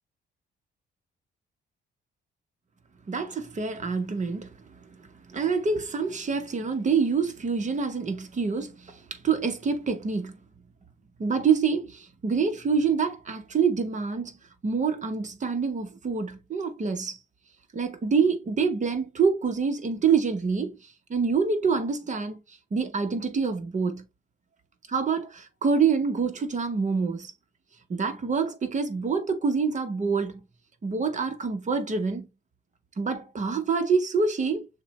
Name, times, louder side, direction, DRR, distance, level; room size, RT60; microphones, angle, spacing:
voice 1, 3.1-4.5 4.9-5.0 5.3-10.3 11.2-14.4 14.6-17.2 17.7-20.8 21.1-24.0 24.9-27.3 27.9-30.4 30.8-32.3 33.0-34.7, right 5 dB, 40° right, 1.0 m, -26 dB
6.5 x 2.2 x 3.1 m
cardioid pair, 90°, 20 cm